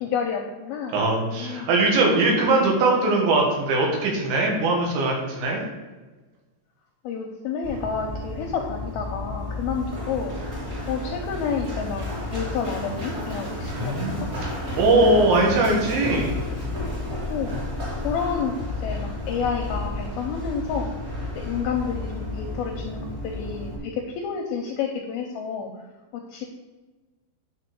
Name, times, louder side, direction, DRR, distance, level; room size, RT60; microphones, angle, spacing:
voice 1, 0.0-1.7 7.0-14.0 14.2-14.3 17.3-17.6 18.0-20.9 21.4-25.7 26.1-26.4, left 6 dB, 80° left, 2 dB, 2.2 m, -30 dB
voice 2, 0.9-5.7 13.8-14.2 14.8-16.3, right 2 dB, 75° right, 0 dB, 4.1 m, -21 dB
Run, 7.6-23.8, left 1 dB, 25° right, 2.0 m, -32 dB
9.5 x 4.4 x 6.9 m, 1.2 s
omnidirectional pair, 5.3 m